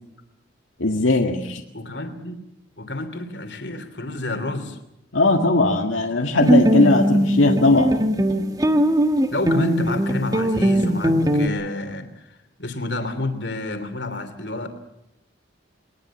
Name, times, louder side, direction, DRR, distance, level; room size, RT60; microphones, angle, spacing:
voice 1, 0.8-1.6 5.1-8.0, left 2 dB, 90° left, 3 dB, 1.8 m, -19 dB
voice 2, 1.7-2.4 2.8-4.8 9.3-14.7, left 2 dB, 65° left, 9 dB, 3.0 m, -29 dB
sound 1, 6.4-11.5, equal, 20° right, 1.3 m, -20 dB
21.5 x 20.0 x 7.3 m, 0.86 s
head